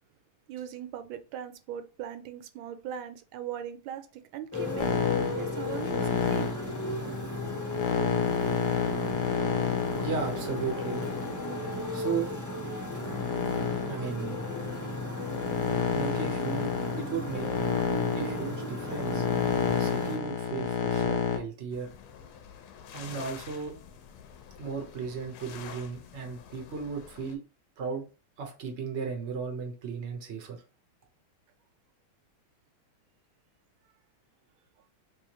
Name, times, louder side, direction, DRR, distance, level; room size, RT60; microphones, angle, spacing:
voice 1, 0.5-4.9 5.4-6.6, right 9 dB, 80° right, 1.3 m, -40 dB
Motorcycle, 4.5-20.2, left 1 dB, 20° left, 0.4 m, -35 dB
sound 1, 4.8-12.2 12.8-21.4, left 7 dB, 70° left, 1.0 m, -30 dB
voice 2, 10.0-11.0 11.9-12.3 13.9-14.5 15.9-17.5 18.1-21.9 22.9-23.7 24.6-27.4 27.8-28.0 28.4-30.6, right 6 dB, 50° right, 0.8 m, -35 dB
sound 2, 21.7-27.4, left 7 dB, 85° left, 1.5 m, -48 dB
3.5 x 3.4 x 2.9 m
omnidirectional pair, 2.3 m